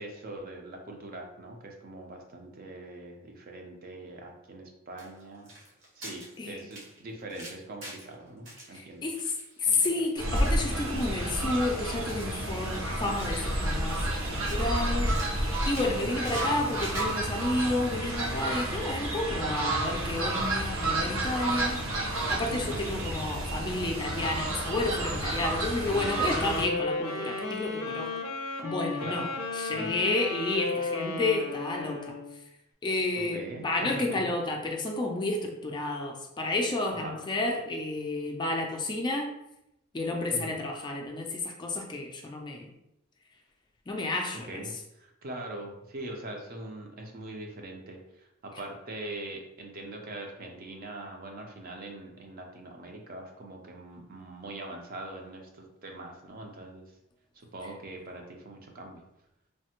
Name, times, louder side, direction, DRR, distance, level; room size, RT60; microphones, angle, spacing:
voice 1, 0.0-5.5 6.0-9.1 9.7-9.9 16.0-16.4 22.5-22.8 29.0-29.2 29.8-29.9 33.2-34.3 36.9-37.2 40.3-40.6 44.3-56.8 57.5-59.0, right 1 dB, 45° right, 2 dB, 0.5 m, -42 dB
sound 1, 5.0-8.1 8.5-10.6 10.9-11.1 11.4-11.7 12.1-13.6 13.9-14.8 15.0-17.2, right 1 dB, 65° right, 1.0 m, -44 dB
voice 2, 8.7-9.3 9.6-15.2 15.7-21.9 22.3-28.1 28.6-32.1 32.8-39.4 39.9-42.7 43.9-44.6, left 2 dB, 20° left, 1 dB, 0.3 m, -31 dB
Fowl, 10.2-26.6, right 1 dB, 90° right, 0.7 m, -30 dB
sound 2, 25.8-32.4, left 3 dB, 85° left, 0.4 m, -34 dB
3.2 x 2.0 x 2.8 m, 0.83 s
head